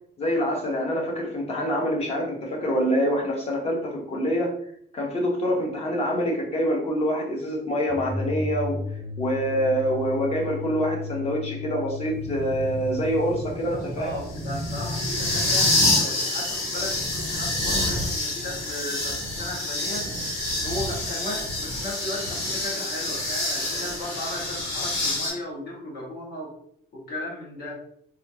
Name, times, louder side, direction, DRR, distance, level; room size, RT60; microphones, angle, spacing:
voice 1, 0.2-4.5 4.9-8.8 9.2-14.1, equal, 35° left, 0 dB, 0.9 m, -26 dB
sound 1, 7.9-13.5, left 2 dB, 25° right, 0.4 m, -34 dB
sound 2, 12.2-25.3, left 2 dB, 80° left, 1.3 m, -27 dB
voice 2, 13.7-20.1 20.6-26.5 26.9-27.8, left 1 dB, 60° left, -4 dB, 1.3 m, -36 dB
4.1 x 2.3 x 2.7 m, 0.66 s
cardioid pair, 145°, 19 cm